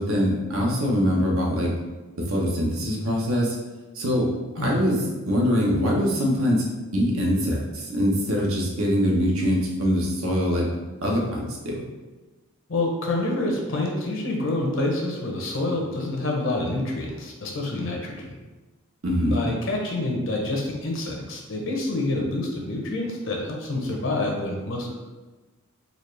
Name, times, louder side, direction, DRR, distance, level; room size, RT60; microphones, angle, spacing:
voice 1, 0.0-1.7 2.2-3.6 3.9-4.3 4.5-5.0 5.2-6.7 6.9-10.7 11.0-11.8 19.0-19.5, equal, 70° right, -2 dB, 0.9 m, -23 dB
voice 2, 12.7-18.3 19.2-24.9, left 2 dB, 60° left, 0 dB, 0.7 m, -27 dB
4.0 x 2.4 x 3.2 m, 1.2 s
head